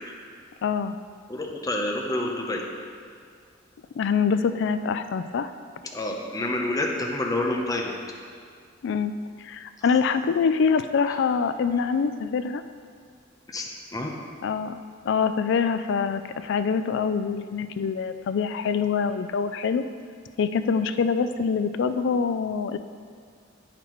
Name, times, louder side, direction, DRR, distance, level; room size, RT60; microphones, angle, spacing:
voice 1, 0.6-1.0 4.0-5.5 8.8-9.1 9.4-12.6 14.4-14.8 15.0-19.8 20.4-22.8, left 6 dB, 65° left, 10 dB, 0.3 m, -25 dB
voice 2, 1.3-2.6 5.9-7.9 9.8-9.9 13.5-13.6 13.9-14.1, left 1 dB, 20° left, 0 dB, 0.7 m, -28 dB
8.5 x 5.9 x 3.1 m, 2.1 s
head